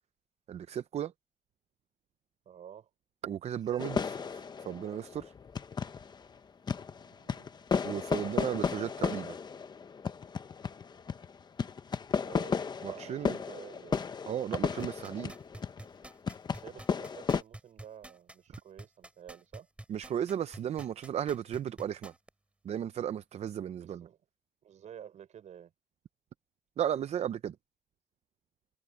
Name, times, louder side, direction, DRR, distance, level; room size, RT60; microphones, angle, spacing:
voice 1, 0.5-1.1 3.2-5.3 7.8-9.4 12.8-13.4 14.3-15.3 19.9-22.1 22.6-24.1 26.8-27.5, right 9 dB, 60° right, 0.5 m, -35 dB
voice 2, 2.5-2.9 7.2-7.5 12.2-14.1 16.5-19.7 23.8-24.2 24.6-25.7, right 9 dB, 80° right, 5.9 m, -51 dB
sound 1, 3.5-9.4, right 5 dB, 35° right, 7.6 m, -63 dB
sound 2, 3.8-6.3 6.7-17.4, left 6 dB, 35° left, 0.8 m, -34 dB
sound 3, 14.8-22.3 22.8-22.9, right 1 dB, 10° right, 4.2 m, -48 dB
wide cardioid pair, 170°, 12 cm